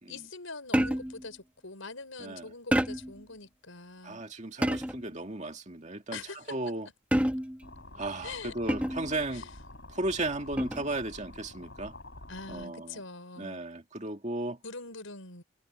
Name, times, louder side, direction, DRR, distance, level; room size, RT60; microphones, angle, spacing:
voice 1, 0.1-4.2 6.1-6.6 8.2-8.5 9.3-9.5 12.3-13.6 14.6-15.4, left 3 dB, 75° left, 5.9 m, -43 dB
sound 1, 0.7-1.3 2.7-3.2 4.6-5.1 7.1-7.7 8.7-9.2 10.6-11.0, equal, 5° right, 1.9 m, -28 dB
voice 2, 2.2-2.5 4.0-6.2 6.5-6.9 7.9-9.5 9.9-11.9 12.5-13.0 13.4-14.6, right 2 dB, 35° right, 2.2 m, -35 dB
sound 2, 7.6-12.7, left 2 dB, 55° left, 7.4 m, -48 dB
head